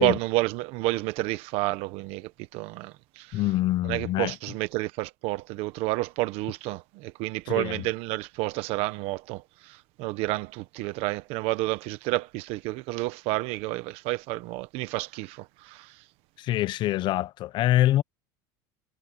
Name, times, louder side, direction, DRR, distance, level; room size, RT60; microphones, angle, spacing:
voice 1, 0.0-3.4 3.9-15.9, right 19 dB, 60° right, 1.1 m, -30 dB
voice 2, 3.3-4.4 7.5-7.9 16.4-18.0, left 14 dB, 45° left, 0.7 m, -25 dB
cardioid pair, 150°, 12 cm